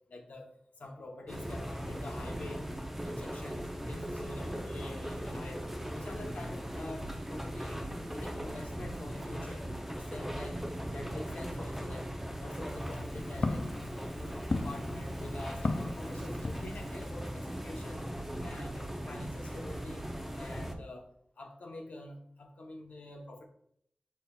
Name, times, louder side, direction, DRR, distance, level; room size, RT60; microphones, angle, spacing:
voice 1, 0.1-0.5 0.8-2.6 3.0-5.7 5.9-7.8 8.1-10.6 10.9-12.1 12.4-13.7 14.1-18.1 18.4-20.1 20.4-21.1 21.4-23.5, left 2 dB, 75° left, 3 dB, 0.8 m, -46 dB
sound 1, 1.3-20.7, equal, 5° right, 0.5 m, -39 dB
Walk footsteps, 12.6-17.1, left 3 dB, 50° left, 0.4 m, -37 dB
5.4 x 4.1 x 2.3 m, 0.68 s
wide cardioid pair, 105°, 3 cm